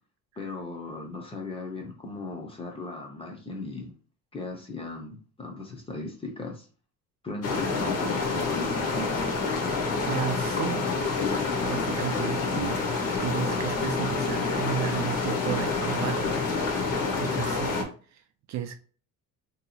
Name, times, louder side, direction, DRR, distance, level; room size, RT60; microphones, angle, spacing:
voice 1, 0.4-3.9 4.3-6.7 7.2-9.1, left 3 dB, 15° left, 0.6 m, -37 dB
sound 1, 7.4-17.8, left 4 dB, 45° left, 0.8 m, -28 dB
voice 2, 10.1-10.9 11.6-12.8 13.2-18.8, right 9 dB, 55° right, 0.4 m, -34 dB
2.8 x 2.3 x 4.1 m
cardioid pair, 165°, 34 cm